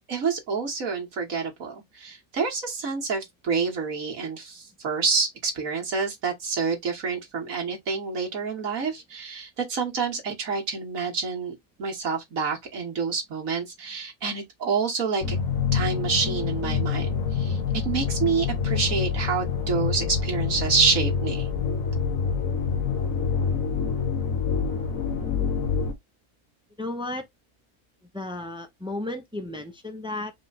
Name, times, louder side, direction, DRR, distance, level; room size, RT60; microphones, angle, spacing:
voice 1, 0.1-15.4 15.7-21.5, right 5 dB, 65° right, 2.0 m, -28 dB
sound 1, 15.2-25.9, left 6 dB, 65° left, 1.5 m, -26 dB
voice 2, 26.8-27.2 28.1-30.3, left 2 dB, 5° right, 0.4 m, -33 dB
4.8 x 2.3 x 4.0 m
omnidirectional pair, 1.6 m